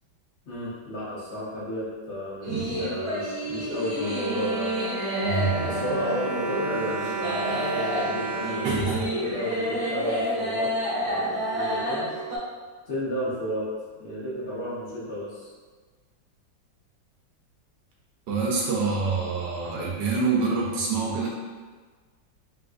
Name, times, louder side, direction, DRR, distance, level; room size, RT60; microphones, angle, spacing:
voice 1, 0.5-4.7 5.6-10.7 11.0-12.1 12.8-13.7 14.0-15.5, left 1 dB, 65° left, -8 dB, 0.7 m, -33 dB
sound 1, 2.4-12.4, equal, 35° right, 0.6 m, -29 dB
voice 2, 2.5-2.8 5.2-5.8 8.6-9.0 18.3-21.3, right 4 dB, 70° right, -4 dB, 1.2 m, -26 dB
Bowed string instrument, 3.5-9.7 10.4-10.5 10.8-11.0, right 4 dB, 85° right, 0.7 m, -34 dB
3.8 x 2.5 x 2.3 m, 1.4 s
omnidirectional pair, 2.1 m